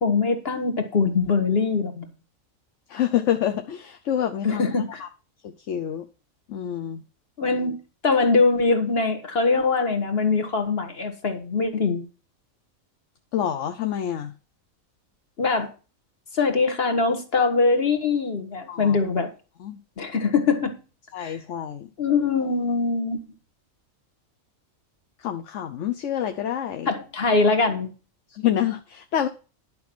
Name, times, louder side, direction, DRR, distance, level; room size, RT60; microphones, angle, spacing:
voice 1, 0.0-2.1 4.4-5.0 7.4-7.8 8.0-12.1 15.4-15.7 16.3-19.3 20.0-20.7 21.2-21.4 22.0-23.2 26.9-27.9, left 4 dB, 45° left, 7 dB, 1.8 m, -22 dB
voice 2, 2.9-4.6 5.0-5.1 5.4-6.0 6.5-7.0 13.3-14.3 18.7-19.0 19.6-19.8 21.1-21.9 25.2-26.9 28.3-29.3, left 10 dB, 65° left, 6 dB, 1.1 m, -27 dB
11.0 x 5.6 x 6.1 m, 0.33 s
omnidirectional pair, 1.4 m